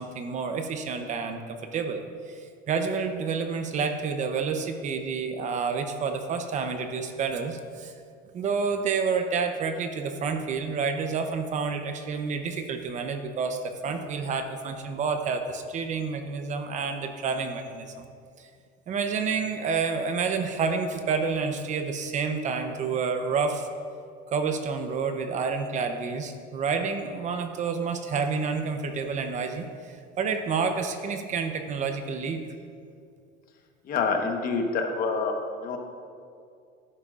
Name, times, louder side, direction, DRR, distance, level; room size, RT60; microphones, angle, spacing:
voice 1, 0.0-7.9 8.3-18.0 18.4-18.5 18.9-23.7 24.3-32.4, right 5 dB, 35° right, 7 dB, 0.7 m, -29 dB
voice 2, 33.8-35.8, left 4 dB, 45° left, 4 dB, 1.2 m, -27 dB
14.0 x 11.0 x 2.5 m, 2.3 s
cardioid pair, 145°, 21 cm